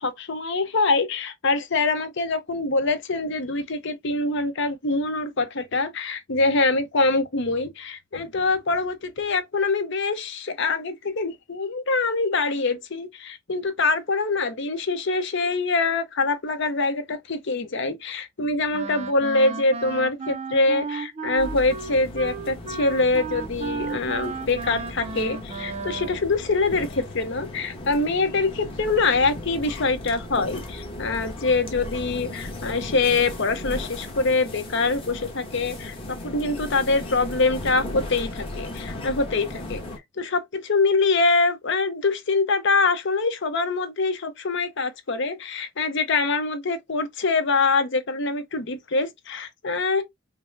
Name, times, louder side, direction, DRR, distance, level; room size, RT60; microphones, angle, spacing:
voice 1, 0.0-39.8 40.2-50.0, left 3 dB, 60° left, 0.8 m, -24 dB
Wind instrument woodwind instrument, 18.7-26.3, right 4 dB, 30° right, 0.4 m, -34 dB
sound 1, 21.4-40.0, left 1 dB, 30° left, 1.1 m, -36 dB
5.3 x 2.1 x 2.6 m
head